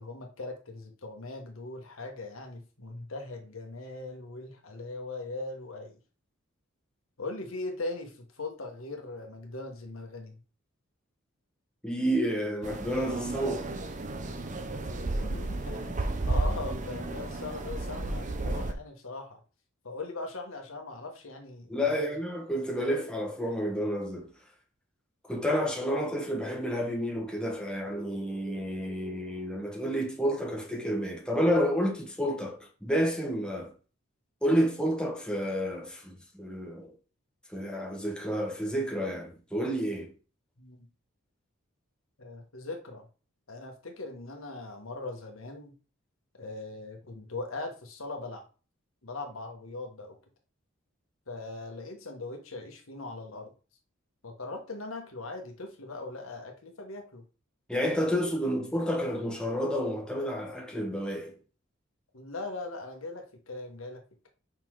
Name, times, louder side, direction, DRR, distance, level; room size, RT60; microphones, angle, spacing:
voice 1, 0.0-6.0 7.2-10.4 15.0-19.4 19.8-22.2 40.6-40.8 42.2-43.1 43.5-45.7 46.3-48.4 49.0-50.2 51.3-53.5 54.2-57.2 62.1-64.3, left 2 dB, 85° left, 1.4 m, -40 dB
voice 2, 11.8-13.7 21.7-24.3 25.3-33.7 34.4-36.9 37.5-40.1 57.7-61.4, equal, 5° left, 1.2 m, -30 dB
sound 1, 12.6-18.7, right 2 dB, 35° right, 0.7 m, -33 dB
5.7 x 3.9 x 4.7 m
head